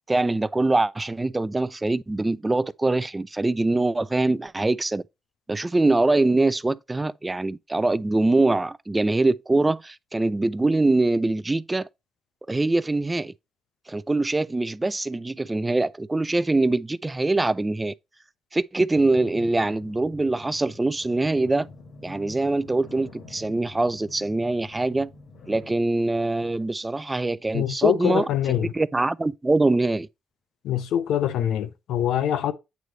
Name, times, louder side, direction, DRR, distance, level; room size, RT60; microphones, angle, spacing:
voice 1, 0.1-5.0 5.5-11.9 12.5-13.3 13.9-17.9 18.5-21.7 22.0-25.1 25.5-28.2 28.6-30.1, right 2 dB, 15° right, 0.4 m, -23 dB
sound 1, 18.9-25.7, left 3 dB, 65° left, 2.0 m, -46 dB
voice 2, 27.5-28.7 30.6-32.5, left 10 dB, 80° left, 0.7 m, -24 dB
8.2 x 3.2 x 3.8 m
cardioid pair, 90°, 0 cm